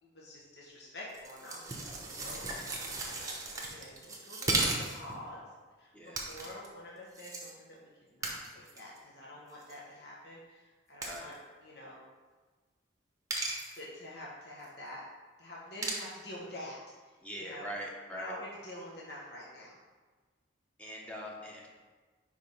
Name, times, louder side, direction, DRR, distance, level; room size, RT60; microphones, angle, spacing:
voice 1, 0.0-5.4 5.8-12.0 13.7-15.0 15.4-16.8 17.4-17.7 18.1-19.8, left 1 dB, 55° left, -4 dB, 1.2 m, -47 dB
sound 1, 1.1-5.2 6.1-6.7 7.1-7.5 8.2-9.0 9.5-9.7 11.0-11.3 13.3-13.8 15.8-16.1, right 2 dB, 15° right, 0.9 m, -35 dB
voice 2, 17.2-18.4 20.8-21.7, equal, 5° left, -2 dB, 1.0 m, -42 dB
4.9 x 4.8 x 5.6 m, 1.4 s
head